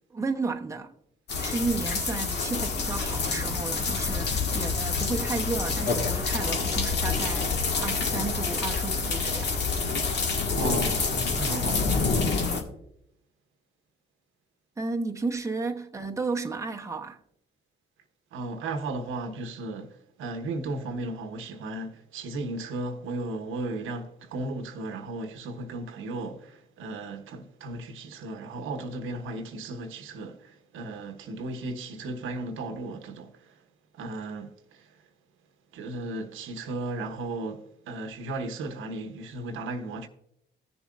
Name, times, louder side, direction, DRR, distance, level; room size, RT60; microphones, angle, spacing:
voice 1, 0.1-0.9 1.4-9.6 14.8-17.2, right 3 dB, 15° right, 0.8 m, -33 dB
sound 1, 1.3-12.6, left 4 dB, 60° left, 1.6 m, -27 dB
voice 2, 10.5-11.9 18.3-33.6 33.9-34.9 35.7-40.1, right 2 dB, 85° right, 1.1 m, -35 dB
15.5 x 6.9 x 2.4 m
cardioid pair, 90°, 20 cm